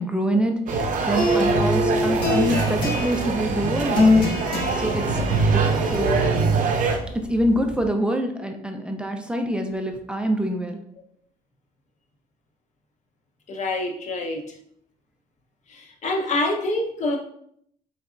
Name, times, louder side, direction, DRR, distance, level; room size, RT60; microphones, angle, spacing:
voice 1, 0.0-4.3 4.7-5.2 5.5-5.6 5.9-6.2 7.1-10.8, right 1 dB, 5° right, 3 dB, 0.4 m, -25 dB
sound 1, 0.7-7.0, right 4 dB, 50° right, 0.6 m, -23 dB
sound 2, 1.1-7.9, left 2 dB, 70° left, 1.2 m, -25 dB
voice 2, 13.5-14.4 16.0-17.2, left 2 dB, 45° left, 2 dB, 0.8 m, -25 dB
4.0 x 3.3 x 2.4 m, 0.69 s
cardioid pair, 110°, 17 cm